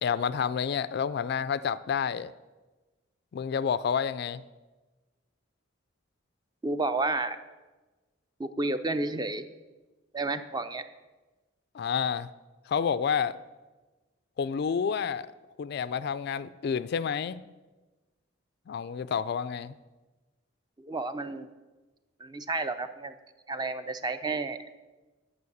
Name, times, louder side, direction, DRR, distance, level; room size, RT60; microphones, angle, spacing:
voice 1, 0.0-2.3 3.3-4.4 11.7-12.3 12.7-13.4 14.4-15.3 15.6-17.4 18.7-19.7, left 7 dB, 55° left, 0.3 m, -29 dB
voice 2, 6.6-7.4 8.4-9.5 10.1-10.9 20.8-21.5 22.2-23.1 23.5-24.8, right 2 dB, 20° right, 0.4 m, -31 dB
9.7 x 5.4 x 7.8 m
head